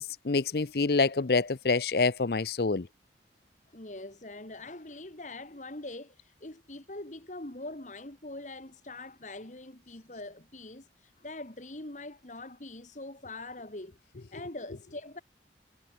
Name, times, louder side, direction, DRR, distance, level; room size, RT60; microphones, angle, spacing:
voice 1, 0.0-2.9, left 4 dB, 60° left, 0.7 m, -27 dB
voice 2, 3.7-14.0 14.3-15.2, left 2 dB, 45° left, 2.2 m, -43 dB
head